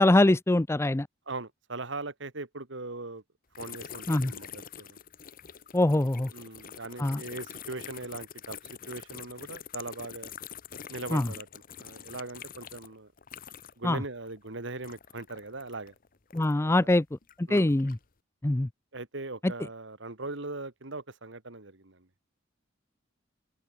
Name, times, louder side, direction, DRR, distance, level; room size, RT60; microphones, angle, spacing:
voice 1, 0.0-1.1 4.1-4.3 5.7-6.3 7.0-7.2 11.1-11.3 13.8-14.0 16.3-17.0 17.4-18.0 18.4-18.7 19.4-19.5, left 1 dB, 15° left, 0.5 m, -23 dB
voice 2, 1.3-3.2 3.6-5.0 6.3-8.6 8.9-10.3 10.9-13.1 13.8-15.9 16.6-16.9 17.5-17.7 18.9-22.1, right 2 dB, 65° right, 2.3 m, -40 dB
sound 1, 3.5-13.9 14.2-16.7 17.2-18.0, left 8 dB, 45° left, 1.0 m, -45 dB
open air
head